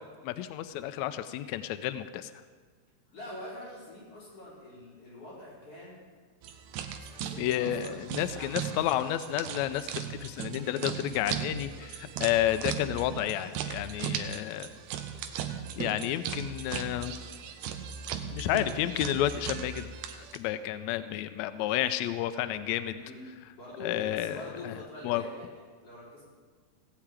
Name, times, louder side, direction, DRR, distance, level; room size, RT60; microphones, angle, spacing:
voice 1, 0.2-2.3 7.4-14.7 15.7-17.1 18.3-23.0 23.8-24.7 25.0-25.2, left 12 dB, 90° left, 12 dB, 1.6 m, -31 dB
voice 2, 3.1-6.0 7.0-8.1 8.4-8.9 23.0-23.2 23.6-26.2, left 1 dB, 45° left, -7 dB, 6.1 m, -45 dB
sound 1, 6.4-20.4, right 8 dB, 80° right, 2.3 m, -37 dB
17.0 x 5.9 x 8.8 m, 1.5 s
omnidirectional pair, 3.8 m